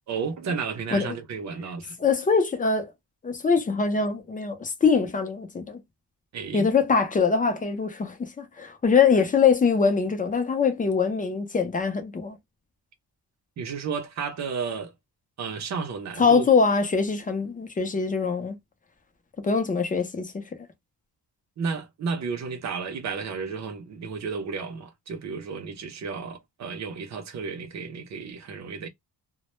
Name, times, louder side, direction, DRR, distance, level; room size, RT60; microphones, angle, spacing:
voice 1, 0.1-2.0 6.3-6.7 13.6-14.9 15.4-16.5 21.6-28.9, right 5 dB, 45° right, 0.5 m, -32 dB
voice 2, 2.0-2.9 3.2-5.8 6.5-12.4 16.2-18.6 19.4-20.4, left 5 dB, 20° left, 0.4 m, -23 dB
2.1 x 2.0 x 2.9 m
wide cardioid pair, 175°, 40 cm